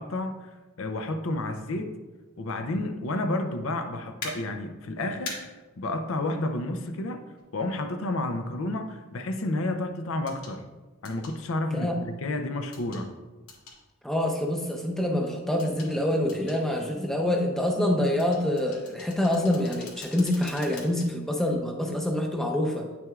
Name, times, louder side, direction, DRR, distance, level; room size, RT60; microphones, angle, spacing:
voice 1, 0.0-1.9 2.4-5.4 5.8-7.3 7.5-10.6 11.0-13.1, left 2 dB, 60° left, 6 dB, 0.5 m, -31 dB
sound 1, 4.2-4.3 5.2-5.4 7.4-7.5 10.3-10.5 11.0-11.3 12.7-13.0 13.5-13.8 15.6-15.9 16.3-16.6 18.2-21.1 21.5-21.6, left 4 dB, 85° left, 2.0 m, -41 dB
voice 2, 14.0-22.9, left 1 dB, ahead, 1 dB, 0.6 m, -26 dB
9.2 x 6.0 x 2.4 m, 1.2 s
head